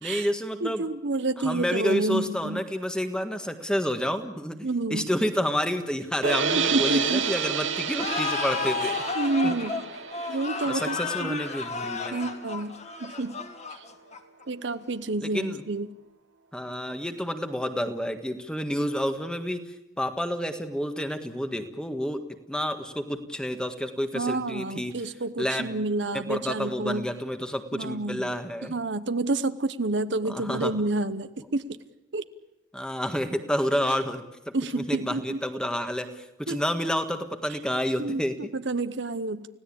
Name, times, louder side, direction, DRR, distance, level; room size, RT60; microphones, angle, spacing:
voice 1, 0.0-0.8 1.4-9.0 9.4-9.5 10.7-12.2 15.2-15.6 16.5-19.6 20.0-22.2 22.5-24.9 25.4-25.8 26.1-28.7 30.3-30.7 32.7-38.5, equal, 5° left, 7 dB, 1.6 m, -29 dB
voice 2, 0.6-2.6 4.6-5.1 6.5-7.3 8.8-9.9 10.3-11.4 12.1-13.4 13.7-13.8 14.5-15.9 24.1-27.1 27.7-28.3 28.6-31.6 32.1-32.2 33.9-34.0 34.5-35.4 36.5-36.6 37.5-37.6 38.0-39.5, right 2 dB, 65° right, 12 dB, 1.0 m, -29 dB
sound 1, 6.2-12.4, right 6 dB, 90° right, 2.1 m, -30 dB
sound 2, 8.0-14.4, left 4 dB, 35° left, 1.8 m, -32 dB
29.5 x 17.0 x 8.7 m, 0.91 s
head